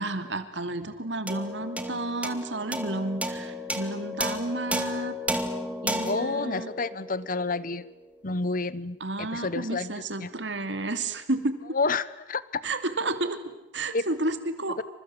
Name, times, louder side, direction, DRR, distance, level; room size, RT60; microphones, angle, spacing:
voice 1, 0.0-5.2 5.8-6.7 9.0-11.6 12.6-14.8, right 2 dB, 75° right, 9 dB, 2.7 m, -31 dB
sound 1, 1.3-7.9, equal, 10° right, 2.2 m, -33 dB
voice 2, 6.0-7.8 8.2-9.9 10.2-10.3 11.7-12.6 13.9-14.0, left 3 dB, 50° left, 17 dB, 1.1 m, -30 dB
28.5 x 26.5 x 7.9 m, 0.95 s
head